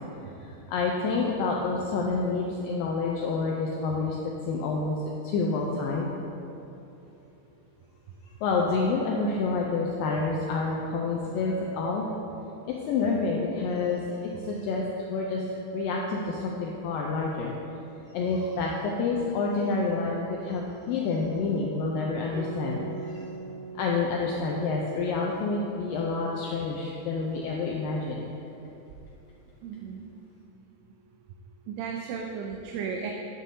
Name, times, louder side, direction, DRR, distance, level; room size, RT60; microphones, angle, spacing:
voice 1, 0.7-4.2 4.5-5.0 5.2-6.1 8.4-12.1 12.7-14.2 14.4-14.8 15.1-15.4 15.7-17.5 18.1-23.2 23.7-28.3, left 4 dB, 90° left, -1 dB, 2.0 m, -28 dB
Guitar, 22.3-27.3, right 5 dB, 50° right, 1.9 m, -42 dB
voice 2, 29.6-30.0 31.7-33.1, right 6 dB, 85° right, 1 dB, 2.6 m, -34 dB
8.9 x 8.1 x 2.7 m, 2.9 s
omnidirectional pair, 4.6 m